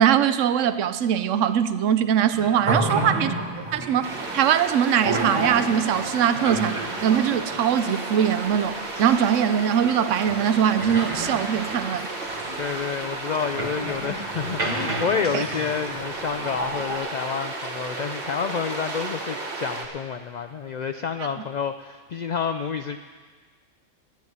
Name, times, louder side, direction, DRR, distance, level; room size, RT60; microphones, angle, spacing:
voice 1, 0.0-3.3 3.7-12.1 15.3-15.4, right 9 dB, 80° right, 12 dB, 1.0 m, -22 dB
sound 1, 2.3-17.0, right 2 dB, 30° right, 1.1 m, -32 dB
voice 2, 2.9-3.2 12.5-23.0, left 6 dB, 75° left, 9 dB, 0.4 m, -29 dB
sound 2, 4.0-19.9, right 2 dB, 50° right, 1.7 m, -33 dB
10.5 x 7.7 x 9.5 m, 1.5 s
omnidirectional pair, 1.3 m